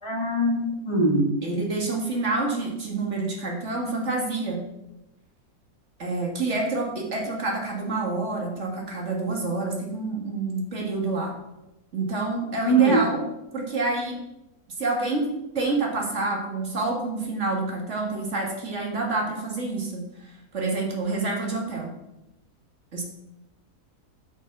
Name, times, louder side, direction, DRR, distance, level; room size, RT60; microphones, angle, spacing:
voice 1, 0.0-1.3 12.6-13.0, right 2 dB, 20° left, -2 dB, 2.2 m, -22 dB
voice 2, 1.4-4.6 6.0-11.3 11.9-13.2 13.5-14.2 14.8-15.3 15.6-20.0 20.5-21.9 22.9-23.0, right 3 dB, 50° right, -1 dB, 2.2 m, -28 dB
8.0 x 6.1 x 6.0 m, 0.93 s
omnidirectional pair, 1.7 m